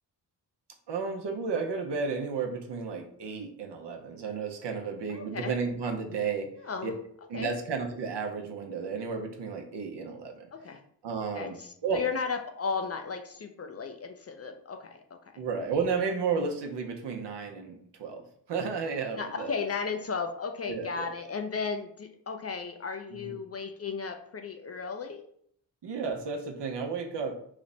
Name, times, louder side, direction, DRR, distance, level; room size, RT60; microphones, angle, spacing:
voice 1, 0.9-6.5 6.8-6.9 7.3-10.5 11.0-11.6 11.8-12.0 15.4-19.5 20.7-21.1 23.1-23.4 25.8-27.4, right 5 dB, 70° right, 3 dB, 0.7 m, -32 dB
voice 2, 5.1-5.5 6.5-7.0 7.3-7.5 10.5-10.8 11.3-15.2 19.1-25.3, left 5 dB, 35° left, 5 dB, 0.4 m, -35 dB
3.2 x 2.0 x 3.8 m, 0.65 s
cardioid pair, 55°, 43 cm